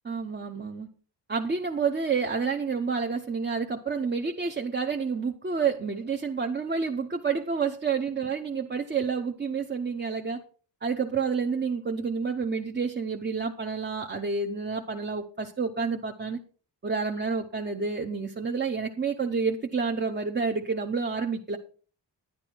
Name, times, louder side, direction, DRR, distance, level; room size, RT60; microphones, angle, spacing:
voice 1, 0.1-0.9 1.3-10.4 10.8-16.4 16.8-21.6, right 5 dB, 25° right, 4 dB, 0.7 m, -29 dB
11.0 x 10.5 x 4.5 m, 0.39 s
wide cardioid pair, 160°, 44 cm